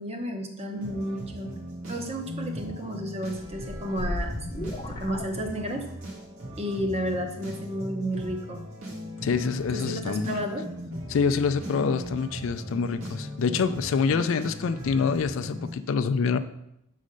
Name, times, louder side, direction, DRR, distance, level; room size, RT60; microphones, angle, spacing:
voice 1, 0.0-1.5 1.9-4.4 4.9-5.9 6.6-8.6 9.7-10.7, equal, 30° right, 4 dB, 0.8 m, -32 dB
sound 1, 0.7-15.7, equal, 70° right, 2.0 m, -39 dB
sound 2, 3.4-6.0, left 1 dB, 20° left, 0.7 m, -35 dB
voice 2, 9.2-10.3 11.1-16.4, left 5 dB, 60° left, 12 dB, 0.3 m, -26 dB
6.4 x 4.2 x 5.1 m, 0.79 s
head